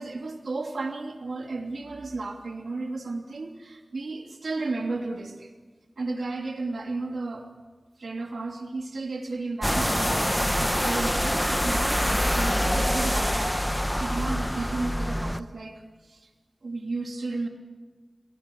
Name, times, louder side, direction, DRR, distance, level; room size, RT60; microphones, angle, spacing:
voice 1, 0.0-5.5 6.0-7.5 8.0-16.3 16.6-17.5, right 3 dB, 90° right, 3 dB, 3.0 m, -33 dB
sound 1, 9.6-15.4, equal, 5° left, 0.9 m, -25 dB
28.0 x 18.0 x 8.4 m, 1.3 s
wide cardioid pair, 65°, 0 cm